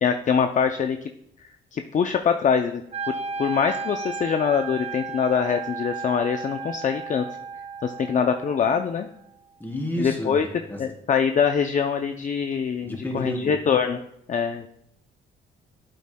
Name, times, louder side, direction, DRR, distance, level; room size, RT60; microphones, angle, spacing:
voice 1, 0.0-1.0 1.7-2.8 3.1-3.2 3.4-7.2 7.8-9.1 10.0-10.5 10.8-14.0 14.3-14.7, left 7 dB, 40° left, 6 dB, 0.5 m, -23 dB
Wind instrument woodwind instrument, 2.9-9.0, right 4 dB, 30° right, 0.7 m, -34 dB
voice 2, 9.6-10.8 12.8-13.6, equal, 10° left, -3 dB, 3.1 m, -31 dB
11.5 x 8.3 x 2.3 m, 0.77 s
cardioid pair, 90°, 20 cm